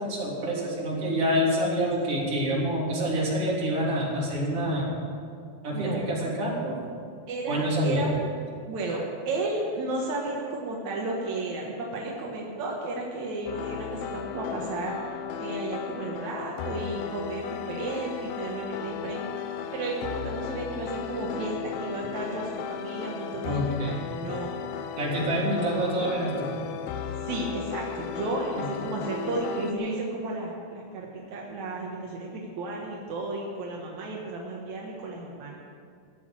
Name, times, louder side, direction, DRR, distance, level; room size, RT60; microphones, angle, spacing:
voice 1, 0.0-4.9 5.6-6.8 7.5-8.1 23.5-24.1 25.0-26.5 28.5-28.7, equal, 35° right, -4 dB, 3.6 m, -27 dB
voice 2, 7.3-8.3 8.7-15.0 15.4-23.8 24.0-24.5 27.2-35.6, right 2 dB, 65° right, -2 dB, 1.8 m, -33 dB
sound 1, 13.5-29.7, left 8 dB, 90° left, 3.1 m, -36 dB
14.5 x 8.2 x 8.8 m, 2.3 s
omnidirectional pair, 5.3 m